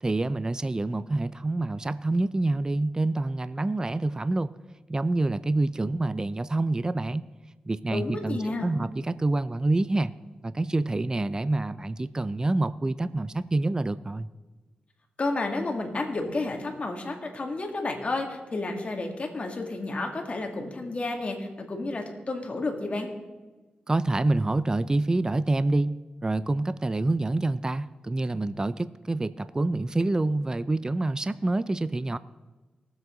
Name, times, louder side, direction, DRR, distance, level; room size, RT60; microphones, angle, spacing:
voice 1, 0.0-4.5 4.9-7.3 7.7-10.1 10.4-14.3 23.9-32.2, right 2 dB, 25° right, 15 dB, 0.4 m, -27 dB
voice 2, 7.9-8.7 15.2-23.1, left 2 dB, 45° left, 2 dB, 2.2 m, -31 dB
19.0 x 7.9 x 3.9 m, 1.2 s
cardioid pair, 60°, 3 cm